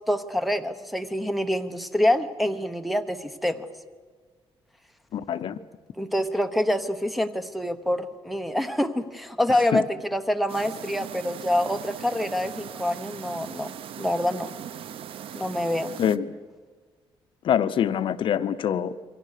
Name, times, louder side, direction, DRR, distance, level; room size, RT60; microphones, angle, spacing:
voice 1, 0.1-3.6 5.4-5.5 6.0-9.9 10.1-13.7 14.0-14.5 15.3-16.0, left 1 dB, ahead, 6 dB, 1.1 m, -26 dB
voice 2, 5.1-5.6 9.7-9.8 16.0-16.3 17.4-18.9, left 9 dB, 60° left, 13 dB, 0.7 m, -24 dB
sound 1, 10.5-16.2, right 9 dB, 65° right, 0.8 m, -39 dB
27.5 x 23.5 x 6.6 m, 1.5 s
cardioid pair, 150°, 10 cm